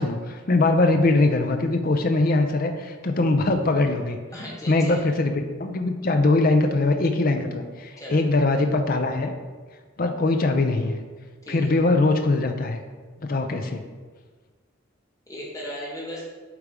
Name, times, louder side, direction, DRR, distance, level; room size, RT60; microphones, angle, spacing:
voice 1, 0.0-4.2 4.7-9.3 10.0-11.0 11.5-12.8 13.2-13.8, left 2 dB, 45° left, 6 dB, 0.5 m, -22 dB
voice 2, 4.3-5.0 8.0-8.2 11.4-11.7 15.3-16.2, equal, 15° left, -5 dB, 1.8 m, -36 dB
8.2 x 3.6 x 5.0 m, 1.4 s
head